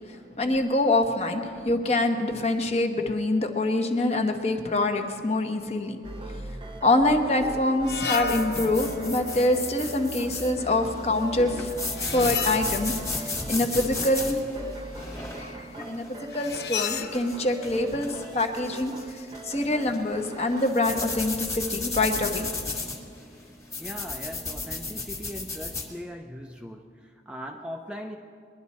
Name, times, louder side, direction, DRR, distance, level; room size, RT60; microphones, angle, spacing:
voice 1, 0.1-6.0 6.8-11.7 12.1-14.4 14.8-14.9 15.4-22.5, left 2 dB, 35° left, 5 dB, 1.0 m, -25 dB
sound 1, 6.0-21.3, right 1 dB, 25° right, 0.9 m, -41 dB
sound 2, 7.4-7.5 7.9-10.8 11.9-13.4 16.3-17.5, left 5 dB, 60° left, 0.5 m, -34 dB
sound 3, 8.1-25.9, left 3 dB, 15° left, 1.6 m, -35 dB
voice 2, 23.8-28.2, equal, 5° right, 2 dB, 0.5 m, -40 dB
21.5 x 11.0 x 4.2 m, 2.3 s
head